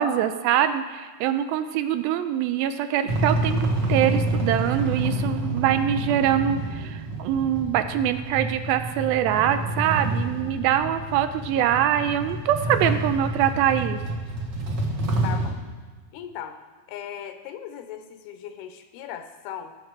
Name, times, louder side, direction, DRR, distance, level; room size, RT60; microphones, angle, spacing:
voice 1, 0.0-14.0, right 10 dB, 80° right, 9 dB, 2.4 m, -24 dB
sound 1, 3.1-15.5, right 2 dB, 65° right, 1.1 m, -28 dB
voice 2, 15.2-15.6 16.1-16.6 16.9-19.8, left 9 dB, 85° left, 8 dB, 2.8 m, -37 dB
19.0 x 6.8 x 4.6 m, 1.4 s
omnidirectional pair, 4.4 m